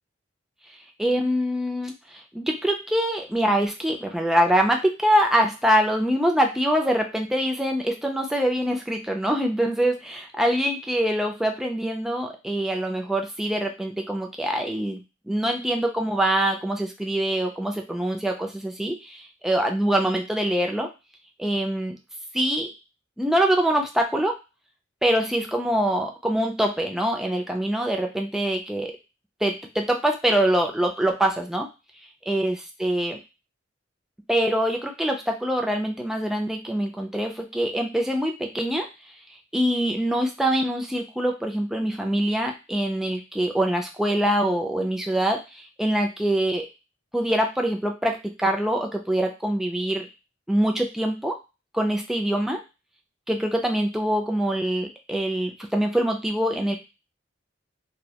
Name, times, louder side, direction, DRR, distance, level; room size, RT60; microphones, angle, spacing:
voice 1, 1.0-20.9 21.4-22.0 22.3-22.7 23.2-24.3 25.0-28.9 29.4-31.7 32.3-33.2 34.3-38.9 39.5-46.7 47.1-50.1 50.5-51.4 51.7-52.6 53.3-56.8, right 1 dB, ahead, 2 dB, 0.3 m, -24 dB
2.2 x 2.1 x 2.7 m, 0.28 s
head